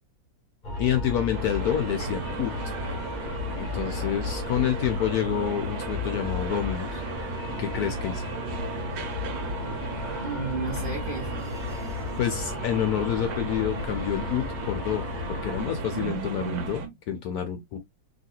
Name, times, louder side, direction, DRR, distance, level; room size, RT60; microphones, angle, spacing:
sound 1, 0.6-15.6, left 3 dB, 50° left, 0.5 m, -35 dB
voice 1, 0.8-2.7 3.6-7.0 7.3-8.2 12.2-17.8, left 9 dB, 75° left, 0.9 m, -28 dB
sound 2, 1.3-16.9, right 2 dB, 90° right, 1.6 m, -35 dB
voice 2, 10.2-11.5 15.9-16.9, right 5 dB, 75° right, 0.5 m, -33 dB
3.1 x 2.8 x 2.6 m
omnidirectional pair, 2.0 m